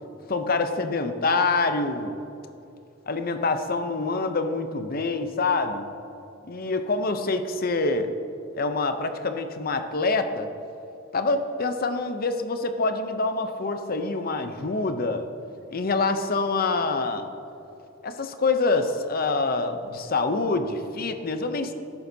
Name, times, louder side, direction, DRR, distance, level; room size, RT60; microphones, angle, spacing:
voice 1, 0.3-2.2 3.1-5.9 6.4-8.1 8.6-10.5 11.1-15.3 15.7-17.3 18.0-21.7, left 3 dB, 45° left, 8 dB, 0.6 m, -26 dB
13.0 x 10.5 x 2.8 m, 2.9 s
head